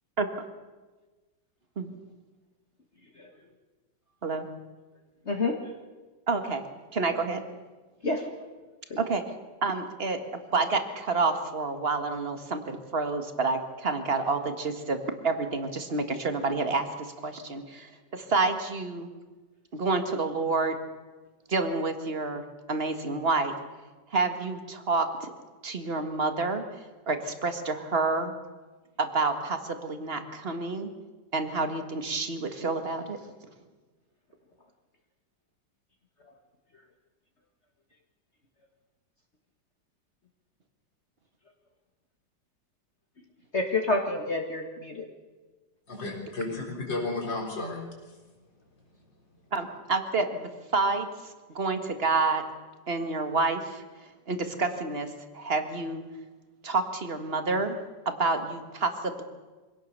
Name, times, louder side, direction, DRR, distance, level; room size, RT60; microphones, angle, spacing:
voice 1, 5.3-5.6 8.0-8.4 8.9-9.0 43.5-45.1, left 2 dB, 40° left, 2 dB, 1.9 m, -28 dB
voice 2, 6.3-6.6 6.9-7.4 9.0-9.2 9.6-10.2 10.5-15.0 15.2-19.1 19.7-20.8 21.5-23.5 24.1-25.3 25.6-26.6 27.1-28.3 29.0-30.9 31.3-33.2 49.5-51.1 51.5-52.4 52.9-53.8 54.3-56.0 56.6-57.8 58.1-59.2, right 3 dB, 35° right, 7 dB, 1.9 m, -28 dB
voice 3, 45.9-47.8 48.1-48.2, left 2 dB, 85° left, 1 dB, 4.7 m, -33 dB
25.0 x 17.5 x 6.8 m, 1.3 s
omnidirectional pair, 1.9 m